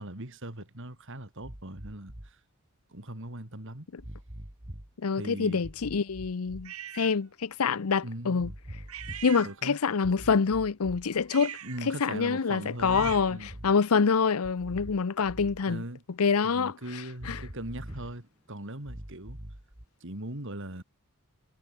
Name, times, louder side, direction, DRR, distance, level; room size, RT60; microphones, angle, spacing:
voice 1, 0.0-2.4 2.9-3.9 5.1-5.7 8.0-8.5 9.4-9.8 11.6-13.6 15.6-16.0 16.4-19.4 20.0-20.8, right 1 dB, 60° right, 3.5 m, -40 dB
sound 1, 1.4-2.3 4.0-4.9 5.6-6.7 8.4-9.3 10.0-11.3 12.8-13.8 14.4-15.6 17.2-18.2 18.8-19.9, right 1 dB, 35° right, 2.6 m, -43 dB
voice 2, 5.0-8.5 9.2-11.6 11.9-13.4 13.6-15.8 16.2-16.7 17.3-17.4, left 5 dB, 80° left, 0.7 m, -26 dB
sound 2, 6.6-7.2 8.9-10.0 11.2-13.5, right 9 dB, 85° right, 2.3 m, -43 dB
head